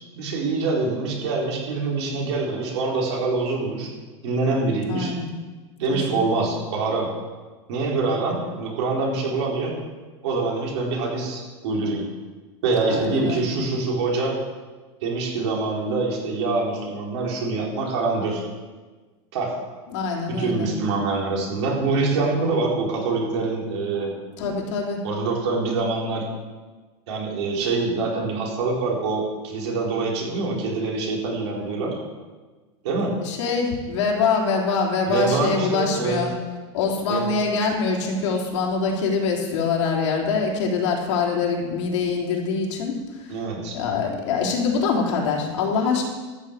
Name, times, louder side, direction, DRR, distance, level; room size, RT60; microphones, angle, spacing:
voice 1, 0.2-3.9 4.2-5.1 5.8-7.1 7.7-9.7 10.2-12.0 12.6-14.3 15.0-18.5 19.3-19.5 20.4-24.1 25.0-26.3 27.1-32.0 32.8-33.1 35.1-36.2 37.1-37.3 43.3-43.8, right 3 dB, 65° right, -2 dB, 4.1 m, -25 dB
voice 2, 4.9-5.3 5.9-6.3 12.8-13.6 19.9-20.7 24.4-25.0 33.2-36.3 36.7-43.3 43.7-46.0, left 5 dB, 80° left, -1 dB, 3.4 m, -24 dB
13.0 x 7.0 x 8.2 m, 1.3 s
supercardioid pair, 170°, 15 cm